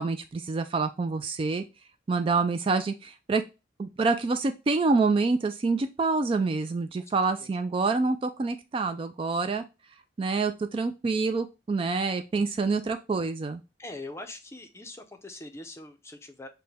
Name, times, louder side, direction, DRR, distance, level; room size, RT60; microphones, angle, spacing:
voice 1, 0.0-1.6 2.1-3.4 3.8-9.6 10.2-13.6, right 4 dB, 30° right, 8 dB, 0.3 m, -27 dB
voice 2, 13.8-16.5, left 2 dB, 15° left, 5 dB, 0.5 m, -42 dB
5.9 x 2.2 x 3.4 m, 0.27 s
head